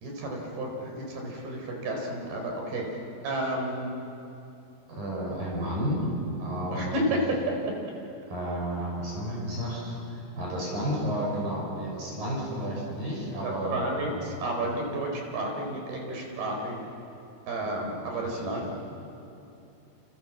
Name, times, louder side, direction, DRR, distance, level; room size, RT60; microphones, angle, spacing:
voice 1, 0.0-2.8 3.2-3.9 6.7-7.2 13.4-16.8 17.5-18.7, right 1 dB, 85° right, 1 dB, 6.5 m, -31 dB
voice 2, 4.9-6.1 6.4-6.9 8.3-14.3 17.6-17.7 18.0-18.6, equal, 65° right, -3 dB, 7.8 m, -32 dB
29.5 x 26.5 x 7.4 m, 2.8 s
omnidirectional pair, 4.3 m